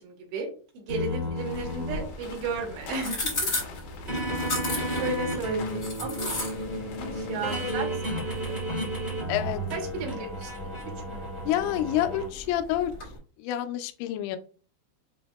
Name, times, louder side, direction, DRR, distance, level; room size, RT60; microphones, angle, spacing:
voice 1, 0.0-3.5 5.0-6.3 6.7-8.6 9.7-10.5 11.1-11.3, right 3 dB, 80° right, 2 dB, 3.2 m, -34 dB
sound 1, 0.9-12.3, equal, 40° right, 0.9 m, -33 dB
Walking On Gravel, 1.4-7.6, left 5 dB, 70° left, 2.8 m, -46 dB
sound 2, 1.5-13.2, left 2 dB, 55° left, 0.9 m, -37 dB
voice 2, 9.3-9.6 11.5-12.9 13.4-14.4, left 12 dB, 90° left, 8 dB, 2.9 m, -28 dB
7.8 x 2.6 x 2.3 m, 0.40 s
omnidirectional pair, 5.2 m